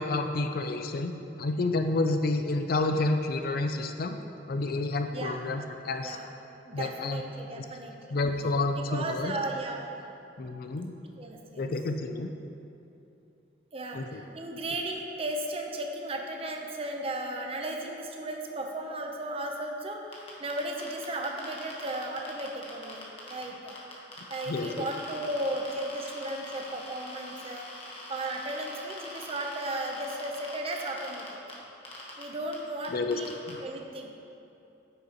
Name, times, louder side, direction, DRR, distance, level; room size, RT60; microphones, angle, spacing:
voice 1, 0.0-4.2 4.5-6.2 6.7-7.2 7.6-7.7 8.1-9.4 10.4-11.0 11.6-12.3 13.9-14.2 24.5-24.8 32.9-33.2 33.5-33.6, left 2 dB, 55° left, 6 dB, 0.4 m, -29 dB
voice 2, 5.1-5.4 6.0-6.3 6.7-8.0 8.7-9.9 11.2-11.7 13.7-23.8 24.3-27.7 28.1-31.3 32.2-33.3 33.6-34.1, right 1 dB, 35° right, 2 dB, 0.7 m, -35 dB
sound 1, 20.1-23.4 23.7-31.5 31.8-32.2 32.5-32.6 32.8-33.5, left 2 dB, 35° left, 1.2 m, -43 dB
9.4 x 6.5 x 3.0 m, 2.9 s
head